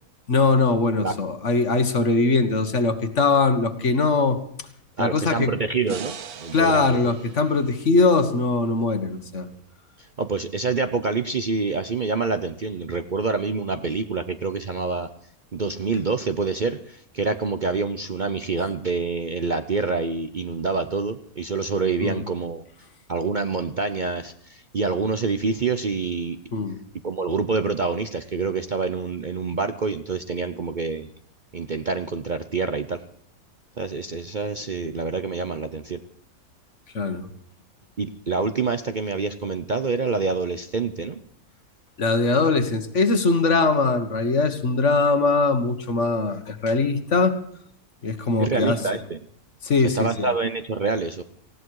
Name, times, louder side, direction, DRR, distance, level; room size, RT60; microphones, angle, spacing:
voice 1, 0.3-4.4 5.0-5.5 6.5-9.5 22.0-22.2 26.5-26.8 36.9-37.3 42.0-47.4 48.0-48.8 49.6-50.3, left 3 dB, 55° left, 9 dB, 1.7 m, -21 dB
voice 2, 5.0-7.0 10.2-15.1 15.5-22.6 23.1-26.4 27.0-31.1 31.5-33.0 33.8-36.0 38.0-41.2 48.4-49.2 49.8-51.2, right 4 dB, 40° right, 9 dB, 0.7 m, -26 dB
sound 1, 5.9-9.1, right 7 dB, 80° right, 1.6 m, -41 dB
19.0 x 16.0 x 4.8 m, 0.67 s
omnidirectional pair, 1.5 m